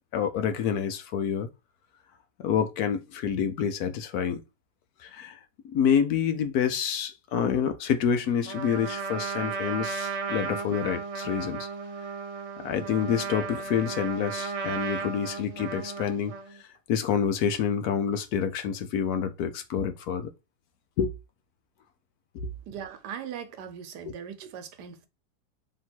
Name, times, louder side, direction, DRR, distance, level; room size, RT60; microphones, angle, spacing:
voice 1, 0.1-1.5 2.4-4.4 5.0-5.4 5.6-11.7 12.6-16.3 16.9-20.3 21.0-21.1 22.3-22.5, left 7 dB, 75° left, 1.2 m, -27 dB
Trumpet, 8.4-16.6, right 5 dB, 50° right, 0.4 m, -34 dB
voice 2, 22.7-25.1, right 8 dB, 90° right, 1.3 m, -39 dB
3.5 x 2.9 x 4.3 m
omnidirectional pair, 1.7 m